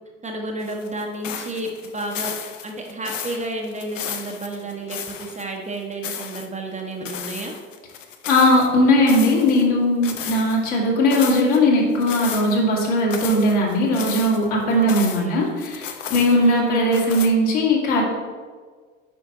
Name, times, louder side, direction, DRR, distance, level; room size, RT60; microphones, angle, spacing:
voice 1, 0.2-2.3 2.6-7.5 14.7-14.9 15.2-15.4 16.3-16.9, right 2 dB, 20° right, 1 dB, 0.9 m, -31 dB
sound 1, 0.6-5.5 5.8-6.5 7.0-8.7 9.1-9.7 10.0-10.7 11.1-11.6 12.0-12.6 13.0-15.3 15.6-16.6 16.9-17.3, left 8 dB, 75° left, 0.7 m, -34 dB
voice 2, 8.3-18.1, left 1 dB, 55° left, -2 dB, 2.1 m, -19 dB
8.9 x 5.3 x 2.9 m, 1.6 s
figure-of-eight pair, 65°, 38 cm